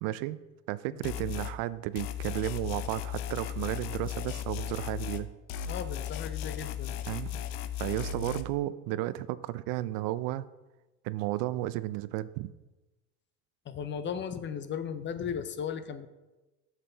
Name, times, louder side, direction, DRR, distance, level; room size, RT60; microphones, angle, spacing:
voice 1, 0.0-0.4 0.7-5.3 7.1-7.4 7.8-10.4 11.0-12.5, right 15 dB, 75° right, 16 dB, 0.5 m, -33 dB
sound 1, 1.0-1.6 2.0-5.2 5.5-8.4, left 9 dB, 85° left, 0.6 m, -36 dB
voice 2, 5.7-7.0 13.7-16.1, left 7 dB, 30° left, 12 dB, 0.6 m, -36 dB
7.9 x 5.8 x 3.9 m, 1.1 s
supercardioid pair, 105°, 35 cm